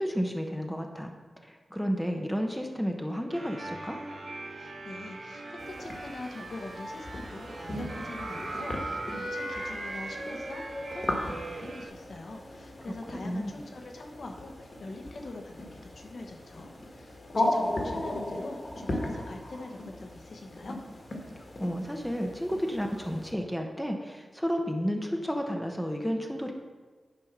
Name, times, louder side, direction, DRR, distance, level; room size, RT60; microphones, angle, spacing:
voice 1, 0.0-4.0 13.2-13.5 21.6-26.5, equal, ahead, 3 dB, 0.7 m, -32 dB
sound 1, 3.3-11.9, right 2 dB, 70° right, 1.8 m, -39 dB
voice 2, 4.5-20.8, left 2 dB, 55° left, 3 dB, 1.0 m, -43 dB
sound 2, 5.6-23.3, left 1 dB, 35° left, 1.4 m, -37 dB
9.8 x 5.4 x 5.9 m, 1.4 s
wide cardioid pair, 175°, 0 cm